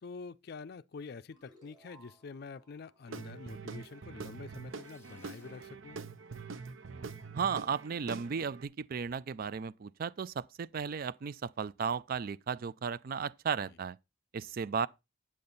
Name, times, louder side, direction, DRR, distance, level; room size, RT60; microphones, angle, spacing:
voice 1, 0.0-6.0 13.6-13.8, left 4 dB, 55° left, 0.4 m, -47 dB
sound 1, 1.3-4.5, right 3 dB, 25° right, 3.2 m, -64 dB
Guitar / Drum, 3.1-8.7, right 4 dB, 85° right, 0.7 m, -45 dB
sound 2, 4.5-5.7, left 2 dB, 15° left, 2.3 m, -63 dB
voice 2, 7.3-14.0 14.3-14.9, right 6 dB, 50° right, 0.4 m, -35 dB
8.7 x 7.5 x 3.9 m
head